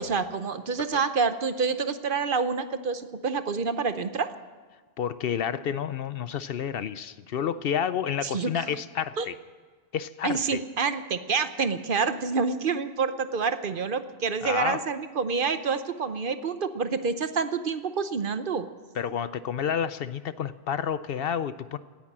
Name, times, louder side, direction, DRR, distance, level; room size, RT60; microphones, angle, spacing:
voice 1, 0.0-4.3 8.2-8.6 9.2-9.3 10.2-18.7, right 5 dB, 55° right, 11 dB, 1.0 m, -27 dB
voice 2, 5.0-9.3 9.9-10.6 14.4-14.8 19.0-21.8, left 8 dB, 65° left, 14 dB, 0.8 m, -30 dB
18.5 x 10.5 x 7.4 m, 1.5 s
omnidirectional pair, 1.1 m